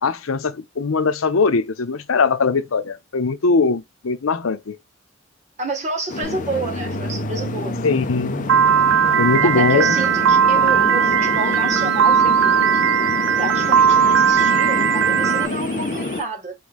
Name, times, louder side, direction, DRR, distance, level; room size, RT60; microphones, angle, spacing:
voice 1, 0.0-4.8 7.5-8.4 9.2-10.0, left 4 dB, 85° left, 0.7 m, -21 dB
voice 2, 5.6-7.7 9.4-12.9 13.4-16.6, right 2 dB, 35° right, 1.8 m, -29 dB
sound 1, 6.1-16.2, left 3 dB, 40° left, 0.5 m, -28 dB
sound 2, 6.2-16.2, right 2 dB, 65° right, 2.1 m, -34 dB
Piano, 8.5-15.5, right 7 dB, 80° right, 0.5 m, -17 dB
4.6 x 3.2 x 3.6 m
head